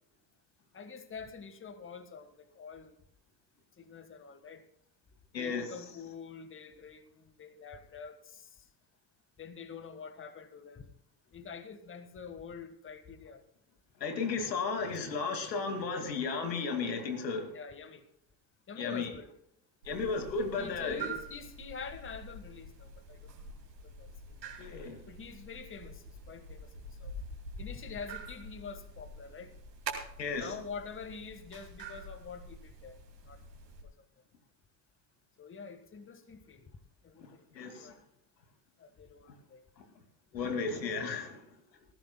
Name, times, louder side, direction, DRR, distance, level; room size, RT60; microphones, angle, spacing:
voice 1, 0.7-2.9 3.8-4.6 5.4-8.6 9.4-10.9 11.3-13.4 14.0-14.1 14.6-14.9 17.5-18.0 18.7-19.3 20.3-23.3 23.9-24.4 25.1-26.7 27.0-27.2 27.6-29.5 30.4-33.0 33.3-33.4 35.4-36.7 37.0-38.0 38.8-39.6, left 5 dB, 25° left, 10 dB, 1.6 m, -46 dB
voice 2, 5.3-5.9 14.0-17.5 18.8-19.1 19.8-21.1 24.6-25.0 30.2-30.5 37.2-38.0 39.8-39.9 40.3-41.4, left 4 dB, 85° left, 6 dB, 2.4 m, -34 dB
sound 1, 19.8-33.8, right 2 dB, 90° right, 2.6 m, -46 dB
19.0 x 15.0 x 2.2 m, 0.72 s
hypercardioid pair, 70°, 49 cm